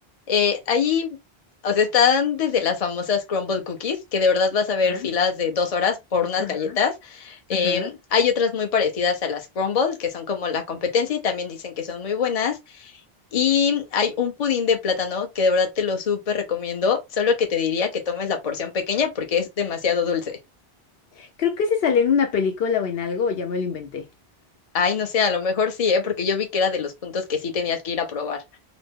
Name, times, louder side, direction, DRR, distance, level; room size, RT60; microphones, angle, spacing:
voice 1, 0.3-1.2 1.6-12.9 13.3-20.4 24.7-28.4, left 6 dB, 40° left, 0.7 m, -23 dB
voice 2, 6.4-6.8 7.5-7.9 21.2-24.1, left 6 dB, 70° left, 0.8 m, -24 dB
3.0 x 2.0 x 3.5 m
omnidirectional pair, 1.0 m